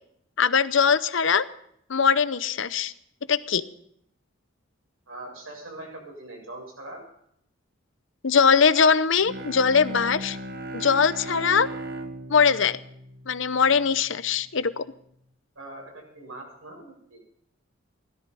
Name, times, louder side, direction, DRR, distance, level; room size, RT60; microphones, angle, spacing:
voice 1, 0.4-1.5 1.9-2.9 3.3-3.6 8.2-10.4 10.7-11.7 12.3-12.8 13.3-14.8, left 6 dB, 65° left, 14 dB, 0.7 m, -21 dB
voice 2, 5.1-7.0 15.6-17.2, right 2 dB, 80° right, -1 dB, 7.2 m, -41 dB
Bowed string instrument, 9.2-14.1, right 1 dB, 45° right, 1.3 m, -37 dB
17.0 x 13.5 x 5.5 m, 0.72 s
head